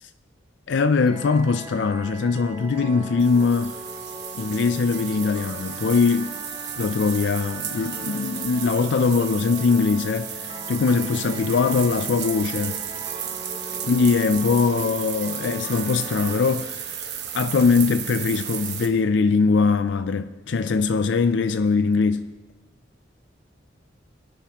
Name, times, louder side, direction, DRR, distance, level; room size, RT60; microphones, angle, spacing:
voice 1, 0.7-3.8 4.3-6.3 6.8-12.8 13.8-22.3, left 4 dB, 70° left, 0.4 m, -22 dB
sound 1, 1.0-16.4, right 1 dB, 30° right, 3.2 m, -40 dB
sound 2, 3.2-18.9, right 9 dB, 55° right, 1.4 m, -34 dB
21.5 x 10.5 x 3.0 m
head